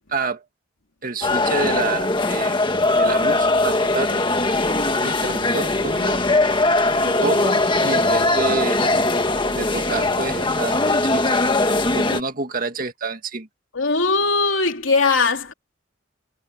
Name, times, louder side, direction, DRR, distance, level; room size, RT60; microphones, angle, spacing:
voice 1, 0.1-0.4 1.0-2.6 2.9-4.2 5.0-6.2 6.5-6.6 7.0-8.9 9.5-11.4 11.9-13.5, right 3 dB, 45° right, 2.0 m, -28 dB
sound 1, 1.2-12.2, left 2 dB, 25° left, 1.7 m, -20 dB
voice 2, 13.7-15.5, left 4 dB, 80° left, 3.0 m, -19 dB
head